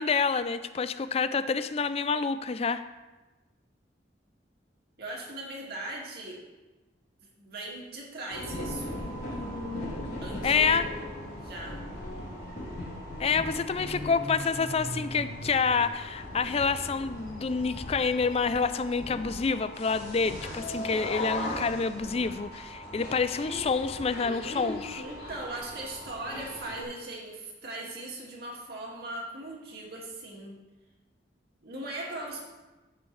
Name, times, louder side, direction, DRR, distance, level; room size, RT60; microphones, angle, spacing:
voice 1, 0.0-2.8 10.4-10.9 13.2-25.1, left 5 dB, 35° left, 13 dB, 0.4 m, -28 dB
voice 2, 5.0-6.4 7.4-9.0 10.2-10.8 11.4-11.8 25.0-30.5 31.6-32.5, right 2 dB, 60° right, -2 dB, 2.2 m, -39 dB
sound 1, 8.3-26.8, left 1 dB, 60° left, 3.9 m, -38 dB
15.0 x 7.0 x 3.3 m, 1.2 s
head